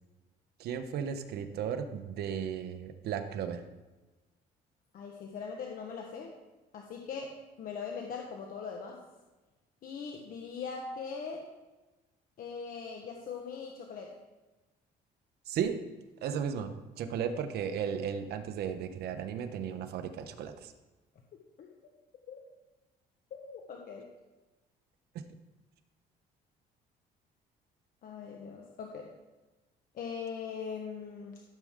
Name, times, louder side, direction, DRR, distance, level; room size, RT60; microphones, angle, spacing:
voice 1, 0.6-3.6 15.5-15.8 16.2-20.7, right 7 dB, 70° right, 8 dB, 1.0 m, -35 dB
voice 2, 4.9-6.3 6.7-9.0 9.8-11.5 12.4-14.1 21.6-21.7 22.3-22.4 23.3-24.1 28.0-29.1 29.9-31.4, left 5 dB, 60° left, 1 dB, 1.3 m, -41 dB
14.0 x 7.6 x 3.7 m, 1.2 s
cardioid pair, 110°, 17 cm